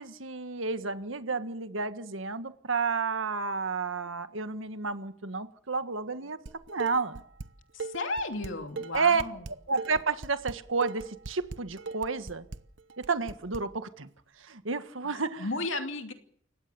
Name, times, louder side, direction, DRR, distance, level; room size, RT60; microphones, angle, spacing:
voice 1, 0.0-6.4 6.7-7.2 8.9-9.2 9.7-12.4 13.0-14.1 14.5-15.5, right 4 dB, 90° right, 10 dB, 1.7 m, -31 dB
Dishes pots and pans, 6.5-7.5 7.8-13.6, right 4 dB, 65° right, 1.0 m, -39 dB
voice 2, 7.7-9.5 15.0-15.1 15.4-16.1, left 2 dB, 75° left, 6 dB, 2.7 m, -34 dB
29.0 x 16.0 x 7.0 m, 0.65 s
head